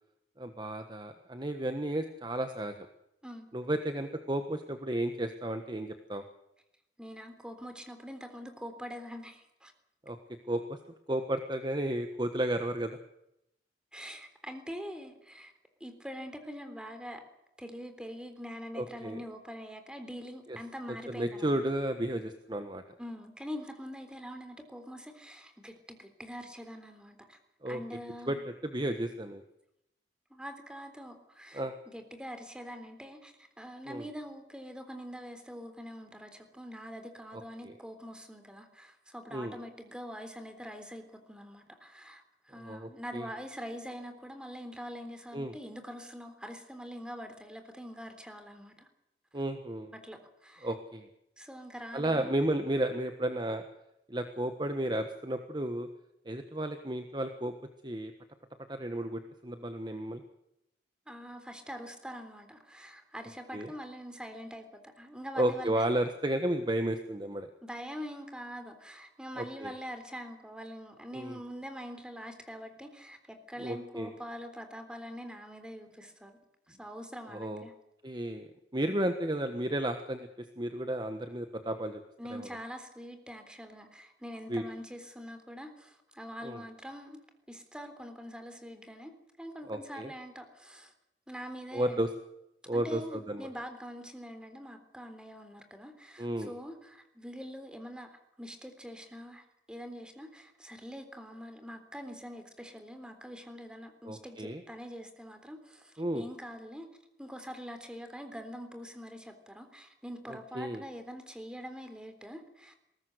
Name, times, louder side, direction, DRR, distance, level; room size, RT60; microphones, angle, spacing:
voice 1, 0.4-2.9 3.5-6.2 10.0-10.2 10.5-10.8 11.1-13.0 18.8-19.2 21.1-22.8 27.6-27.8 28.3-28.4 28.7-29.4 31.5-31.7 33.9-34.1 39.3-39.5 42.6-43.3 45.3-45.5 49.3-49.9 50.6-51.1 51.9-53.6 54.1-55.9 56.2-57.5 57.8-58.1 58.7-60.2 63.5-63.7 65.4-67.5 69.4-69.7 71.1-71.4 73.6-74.1 77.3-77.7 78.0-80.3 80.6-82.0 82.3-82.5 84.5-84.6 86.4-86.6 89.7-90.1 91.7-92.1 92.7-93.5 96.2-96.5 104.0-104.6 106.0-106.2 110.5-110.8, right 1 dB, 25° right, 7 dB, 1.4 m, -33 dB
voice 2, 7.0-9.7 13.9-15.5 15.8-17.2 17.6-21.6 23.0-27.4 27.7-28.4 30.3-48.9 49.9-50.7 51.4-52.4 61.1-65.8 67.6-76.4 76.7-77.7 82.2-87.2 87.5-89.1 89.4-90.9 91.3-92.0 92.7-106.9 107.2-112.7, equal, 5° right, 7 dB, 3.6 m, -44 dB
21.5 x 18.5 x 8.0 m, 0.82 s
head